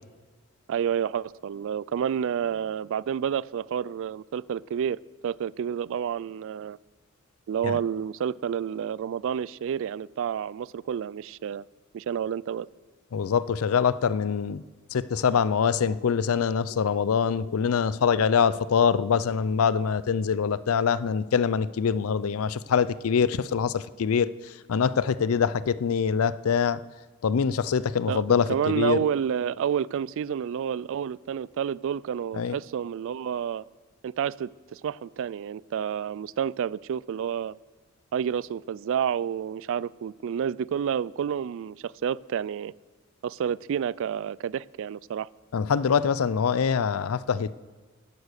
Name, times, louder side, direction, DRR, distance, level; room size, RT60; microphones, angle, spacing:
voice 1, 0.7-6.8 7.5-11.6 11.9-12.7 28.1-33.6 34.0-37.5 38.1-42.7 43.2-45.3, right 8 dB, 65° right, 21 dB, 0.3 m, -29 dB
voice 2, 13.1-14.6 14.9-24.3 24.7-26.8 27.2-29.0 32.4-32.6 45.5-47.5, left 6 dB, 85° left, 17 dB, 0.4 m, -24 dB
11.0 x 11.0 x 6.7 m, 1.4 s
head